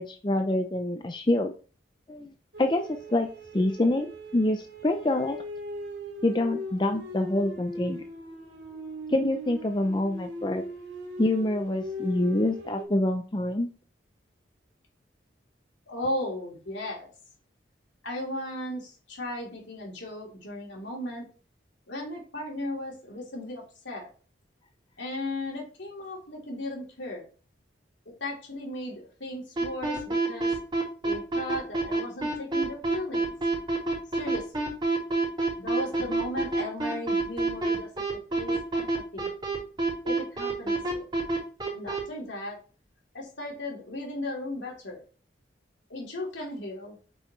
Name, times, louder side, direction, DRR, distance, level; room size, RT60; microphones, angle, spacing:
voice 1, 0.0-1.5 2.1-2.3 2.6-2.8 3.1-3.3 3.5-5.4 6.2-8.0 9.1-10.6 11.2-13.7, left 1 dB, 25° left, 6 dB, 0.5 m, -26 dB
sound 1, 2.5-12.8, equal, 70° right, 2.7 m, -40 dB
voice 2, 15.9-17.1 18.0-21.3 21.9-24.1 25.0-27.3 28.2-30.5 31.0-33.3 34.1-34.7 35.6-39.3 40.0-41.0 41.7-42.6 43.1-45.0 45.9-47.0, left 1 dB, 75° left, -2 dB, 3.3 m, -36 dB
sound 2, 29.6-42.0, right 2 dB, 25° right, 3.6 m, -26 dB
8.4 x 5.5 x 3.2 m, 0.38 s
head